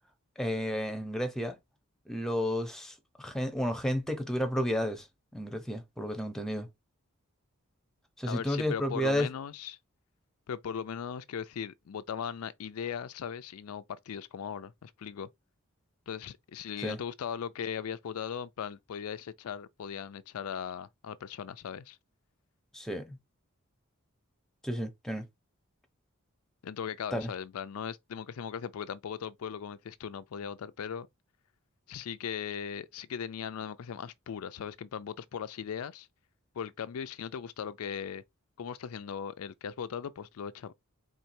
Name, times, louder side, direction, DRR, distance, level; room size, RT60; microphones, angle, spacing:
voice 1, 0.4-1.6 2.1-5.1 5.3-6.7 8.2-9.3 16.8-17.0 22.7-23.2 24.6-25.2 27.1-27.3, equal, ahead, 0.8 m, -32 dB
voice 2, 8.2-9.8 10.5-15.3 16.1-22.0 26.6-31.1 31.9-36.1 36.6-38.2 38.6-40.7, left 7 dB, 90° left, 0.4 m, -38 dB
4.5 x 3.7 x 2.6 m
head